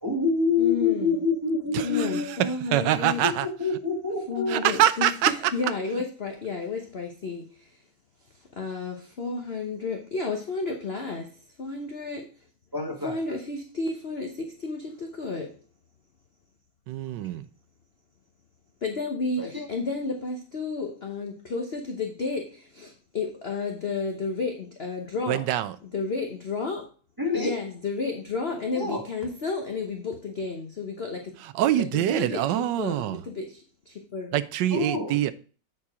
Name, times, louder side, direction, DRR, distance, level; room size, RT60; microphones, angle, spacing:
voice 1, 0.0-2.4 3.2-4.7 12.7-13.3 17.0-17.4 19.4-19.7 27.2-27.5 28.7-29.0 34.7-35.2, left 4 dB, 15° right, 1.0 m, -27 dB
voice 2, 0.6-1.2 1.8-3.2 4.3-7.7 8.5-12.3 13.0-15.6 18.8-25.4 25.8-26.9 27.3-31.3 31.7-34.4, left 4 dB, 45° left, 0.8 m, -32 dB
voice 3, 1.7-3.5 4.5-5.3 16.9-17.5 25.3-25.8 31.4-33.2 34.3-35.3, right 12 dB, 75° right, 1.1 m, -25 dB
8.4 x 4.4 x 4.8 m
omnidirectional pair, 2.3 m